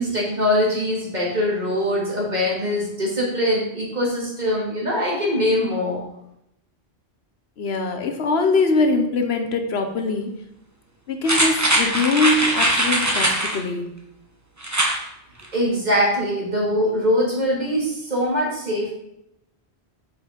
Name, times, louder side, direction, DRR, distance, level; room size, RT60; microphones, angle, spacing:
voice 1, 0.0-6.0 15.5-18.9, left 1 dB, 40° right, -4 dB, 2.7 m, -22 dB
voice 2, 7.6-10.3 11.1-14.0, left 3 dB, 70° left, 5 dB, 1.1 m, -22 dB
sound 1, 11.2-13.6 14.6-15.0 15.4-15.5, right 1 dB, 15° right, 1.1 m, -21 dB
6.9 x 5.4 x 5.2 m, 0.79 s
omnidirectional pair, 1.1 m